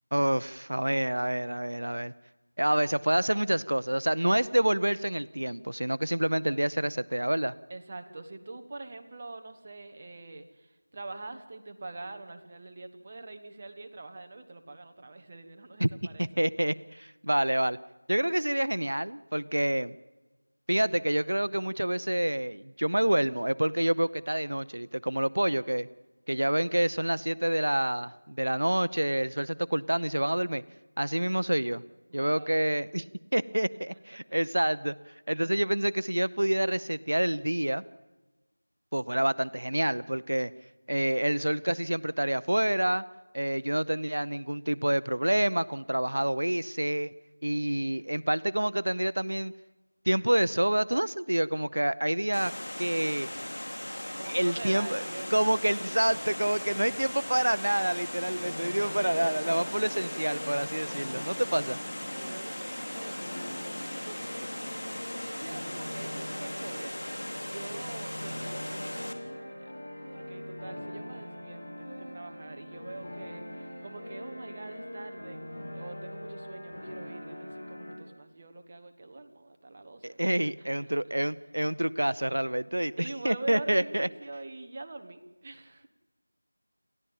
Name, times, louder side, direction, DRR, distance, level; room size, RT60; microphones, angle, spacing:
voice 1, 0.1-2.1 2.6-7.5 15.8-15.9 16.2-17.8 18.1-19.9 20.7-25.9 26.3-30.6 31.0-31.8 32.1-33.1 33.3-34.9 35.3-37.8 38.9-40.5 40.9-43.0 43.3-47.1 47.4-49.5 50.1-52.5 52.8-53.3 54.2-55.0 55.3-61.8 80.0-84.1, right 1 dB, 70° right, 17 dB, 0.7 m, -27 dB
voice 2, 7.7-16.3 32.1-32.6 33.9-34.4 54.2-55.3 62.1-66.9 67.4-69.7 70.1-75.4 75.7-80.2 80.8-80.9 83.0-85.9, right 2 dB, 20° right, 6 dB, 1.2 m, -44 dB
Water, 52.3-69.1, left 1 dB, 65° left, 3.3 m, -38 dB
sound 1, 58.3-77.9, equal, 15° left, 7.5 m, -42 dB
28.5 x 14.0 x 9.0 m, 1.2 s
figure-of-eight pair, 175°, 0 cm